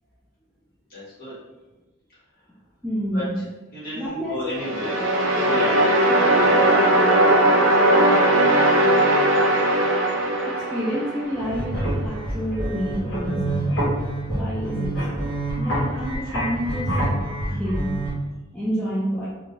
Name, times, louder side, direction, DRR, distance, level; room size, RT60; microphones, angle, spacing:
voice 1, 0.9-1.3 3.1-3.2 3.7-6.1 6.3-7.5 16.2-16.3 17.5-17.6, left 1 dB, 45° left, -9 dB, 1.4 m, -35 dB
voice 2, 2.8-3.4 3.9-4.4 10.5-13.8 14.3-15.2 15.6-18.0 18.5-19.3, equal, 5° left, -9 dB, 0.3 m, -29 dB
sound 1, 4.5-11.6, right 1 dB, 70° right, 0.5 m, -19 dB
sound 2, 11.3-18.1, right 1 dB, 65° left, 1.3 m, -26 dB
3.0 x 2.5 x 2.6 m, 1.1 s
head